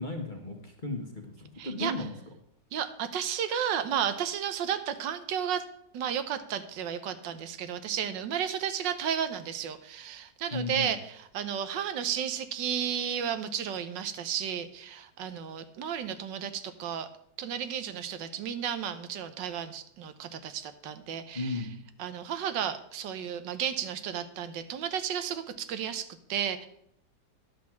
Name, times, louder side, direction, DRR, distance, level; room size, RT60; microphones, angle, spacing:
voice 1, 0.0-2.1 10.5-10.9 21.3-21.7, left 2 dB, 30° left, 3 dB, 1.2 m, -35 dB
voice 2, 1.6-1.9 2.7-5.6 5.9-17.1 17.4-21.7 22.0-26.7, right 8 dB, 85° right, 11 dB, 1.5 m, -33 dB
11.0 x 6.3 x 5.9 m, 0.74 s
omnidirectional pair, 1.9 m